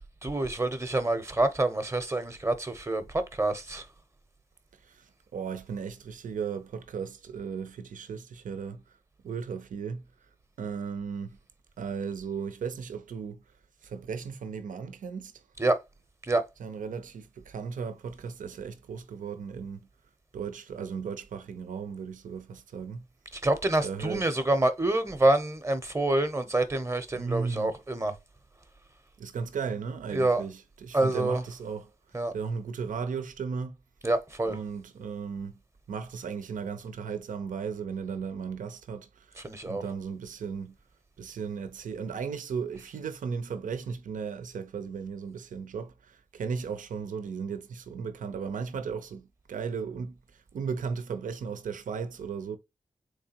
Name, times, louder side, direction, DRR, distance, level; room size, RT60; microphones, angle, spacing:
voice 1, 0.2-3.0 3.4-3.8 15.6-15.8 16.3-16.4 23.4-28.1 30.1-30.4 30.9-31.4 32.1-32.3 34.0-34.6 39.4-39.8, right 2 dB, 20° right, 0.7 m, -26 dB
voice 2, 5.3-8.8 9.2-10.0 10.6-11.4 11.8-13.4 13.8-15.3 16.6-19.9 20.3-23.0 23.8-24.4 27.1-27.7 29.2-31.9 32.3-33.8 34.5-35.6 35.9-39.4 39.7-40.7 41.2-50.2 50.5-52.6, right 6 dB, 85° right, 0.6 m, -36 dB
3.6 x 3.3 x 2.8 m
cardioid pair, 55°, 13 cm